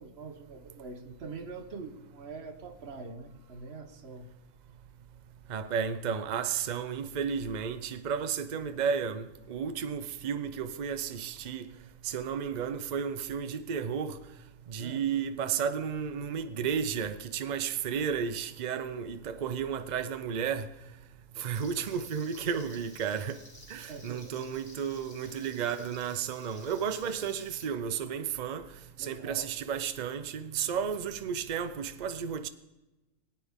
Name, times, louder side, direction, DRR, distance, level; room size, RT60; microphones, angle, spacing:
voice 1, 0.0-4.3 14.8-15.0 23.9-24.4 29.0-29.5, right 4 dB, 50° right, 1.2 m, -44 dB
voice 2, 5.5-11.8 12.0-14.2 14.7-20.7 21.4-23.4 23.7-28.7 29.0-32.5, right 7 dB, 80° right, 0.4 m, -33 dB
Frying (food), 21.5-27.7, left 1 dB, 15° left, 1.9 m, -54 dB
21.0 x 9.3 x 3.6 m
omnidirectional pair, 1.6 m